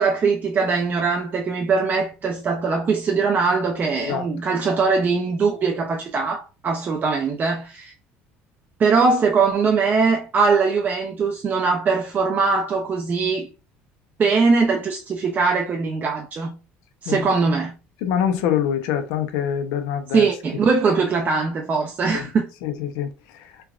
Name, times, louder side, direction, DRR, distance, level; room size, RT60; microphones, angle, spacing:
voice 1, 0.0-7.9 8.8-13.5 14.2-16.6 17.0-17.8 20.1-22.5, right 4 dB, 35° right, 0.4 m, -21 dB
voice 2, 18.0-20.3 22.1-22.2 22.6-23.1, left 9 dB, 85° left, 0.5 m, -24 dB
3.3 x 2.3 x 2.3 m
supercardioid pair, 100°, 5 cm